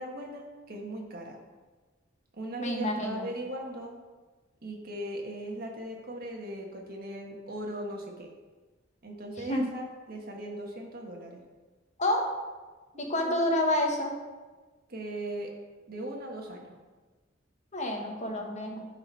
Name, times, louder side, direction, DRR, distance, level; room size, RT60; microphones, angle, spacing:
voice 1, 0.0-1.4 2.3-3.9 4.6-8.3 9.0-11.4 12.9-13.5 14.9-15.5 15.9-16.8, right 1 dB, 50° right, 1 dB, 1.4 m, -39 dB
voice 2, 2.6-3.3 9.5-9.7 12.0-12.2 13.0-14.1 17.7-18.9, left 1 dB, 35° left, 1 dB, 1.2 m, -28 dB
10.5 x 4.2 x 4.6 m, 1.3 s
head